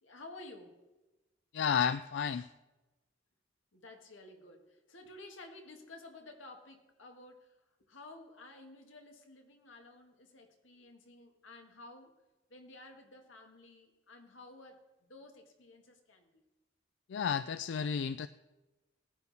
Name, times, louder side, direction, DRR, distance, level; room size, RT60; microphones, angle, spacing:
voice 1, 0.0-0.9 3.7-12.1 12.5-16.4, left 2 dB, 90° left, 3 dB, 1.8 m, -53 dB
voice 2, 1.5-2.5 17.1-18.3, left 7 dB, 65° left, 13 dB, 0.3 m, -32 dB
18.0 x 10.0 x 4.2 m, 1.1 s
head